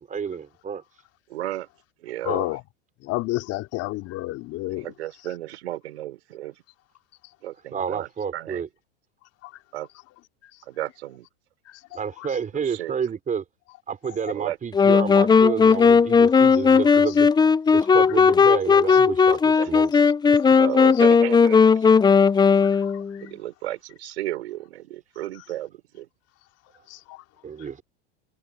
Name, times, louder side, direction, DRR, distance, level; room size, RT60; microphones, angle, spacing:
voice 1, 0.1-0.8 2.3-2.5 7.7-8.7 11.9-13.4 13.9-17.3 17.7-19.9 27.4-27.8, right 7 dB, 25° right, 5.5 m, -30 dB
voice 2, 1.3-1.7 2.0-2.4 4.8-6.6 7.4-8.6 9.7-9.9 10.7-11.3 12.5-12.9 14.3-14.6 19.6-19.7 20.6-21.7 23.2-26.1, right 14 dB, 80° right, 5.6 m, -33 dB
voice 3, 2.2-2.6 3.0-4.9 9.4-9.5 11.6-11.8 12.2-12.3 17.1-17.2 17.8-18.2 18.9-19.0 20.9-21.0 22.6-23.3 26.9-27.2, left 18 dB, 50° left, 3.4 m, -31 dB
sound 1, 14.7-23.2, left 5 dB, 15° left, 0.7 m, -17 dB
hypercardioid pair, 110°, 32 cm